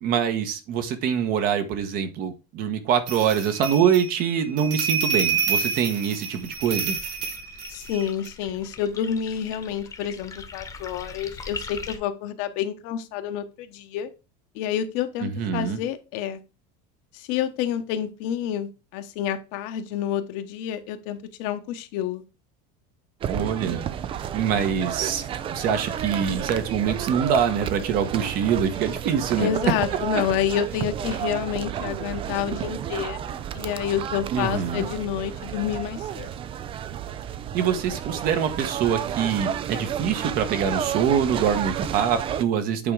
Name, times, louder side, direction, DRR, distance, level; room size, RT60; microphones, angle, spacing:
voice 1, 0.0-7.0 15.2-15.8 23.3-23.9 24.3-25.2 25.5-29.5 34.3-34.8 37.5-42.9, right 8 dB, 45° right, 1.3 m, -24 dB
sound 1, 3.1-8.3, right 6 dB, 85° right, 2.0 m, -28 dB
sound 2, 6.4-12.0, left 4 dB, 15° left, 1.1 m, -41 dB
voice 2, 7.7-14.1 14.5-16.4 17.1-22.2 29.4-36.3, left 9 dB, 60° left, 1.1 m, -29 dB
sound 3, 23.2-42.4, right 9 dB, 25° right, 0.4 m, -31 dB
8.6 x 3.7 x 4.8 m
supercardioid pair, 150°, 20 cm